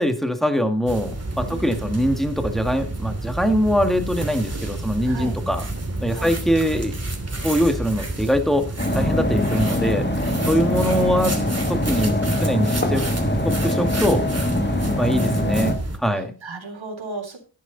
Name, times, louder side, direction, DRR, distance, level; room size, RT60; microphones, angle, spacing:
voice 1, 0.0-5.6 6.0-6.9 7.4-8.7 8.9-10.1 10.5-11.4 11.7-13.1 13.4-14.3 15.0-16.3, equal, ahead, 7 dB, 1.9 m, -22 dB
sound 1, 0.9-16.0, right 2 dB, 30° right, 2.8 m, -30 dB
voice 2, 1.4-2.0 5.0-5.3 6.1-6.3 8.8-8.9 10.3-11.2 14.7-15.0 16.1-17.4, right 3 dB, 75° right, 3 dB, 3.8 m, -36 dB
sound 2, 8.8-15.8, left 1 dB, 20° left, 2.1 m, -23 dB
12.0 x 11.0 x 4.0 m, 0.35 s
wide cardioid pair, 70°, 47 cm